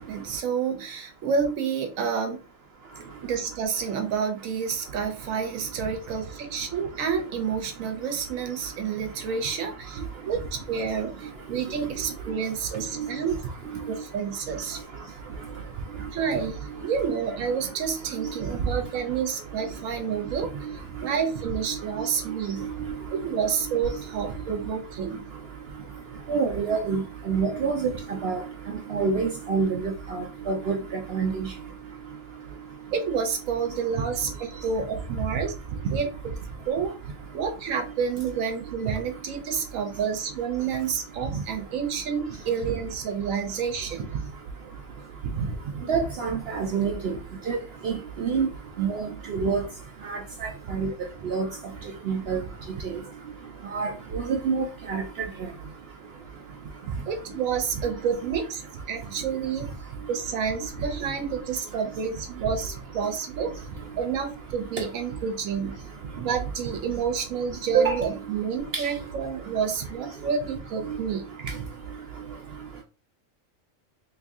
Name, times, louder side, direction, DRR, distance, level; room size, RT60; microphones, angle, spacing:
voice 1, 0.1-2.5 3.2-10.0 10.3-13.4 13.9-14.8 16.1-20.5 21.0-22.6 23.1-25.3 32.9-35.5 35.9-36.1 36.7-36.9 37.3-44.0 57.1-58.6 58.9-59.7 60.1-63.5 64.0-65.8 66.2-71.2, right 6 dB, 80° right, 1.1 m, -29 dB
voice 2, 26.3-27.0 27.3-27.9 28.2-28.4 28.9-30.7 31.1-31.5 45.9-47.1 47.5-47.6 47.8-47.9 48.2-48.5 48.8-49.6 50.1-50.9 51.2-51.5 52.1-52.4 53.7-55.0 67.7-68.0 68.7-68.9, right 5 dB, 65° right, 0.7 m, -26 dB
3.0 x 2.6 x 3.5 m
omnidirectional pair, 1.4 m